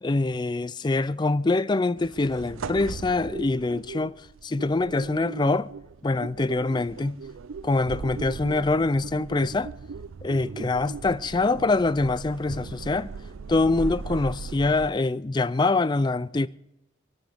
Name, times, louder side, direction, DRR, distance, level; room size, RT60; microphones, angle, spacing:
voice 1, 0.0-4.2 4.4-5.7 6.0-7.2 7.6-9.7 10.2-13.1 13.5-16.5, left 3 dB, 20° left, 0.4 m, -24 dB
sound 1, 2.0-14.9, right 5 dB, 85° right, 0.5 m, -38 dB
27.0 x 9.1 x 3.5 m
head